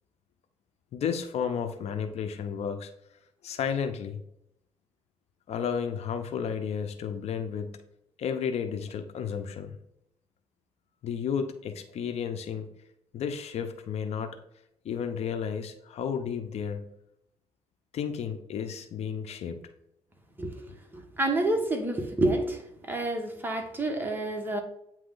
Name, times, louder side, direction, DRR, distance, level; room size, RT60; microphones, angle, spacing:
voice 1, 0.9-2.9 3.4-4.2 5.5-7.8 8.2-9.8 11.0-12.7 13.1-14.3 14.8-16.9 17.9-19.6, left 7 dB, 65° left, 8 dB, 0.7 m, -32 dB
voice 2, 20.9-22.6 22.9-24.6, right 2 dB, 15° right, 3 dB, 1.3 m, -28 dB
8.7 x 3.1 x 3.8 m, 0.76 s
cardioid pair, 95°, 12 cm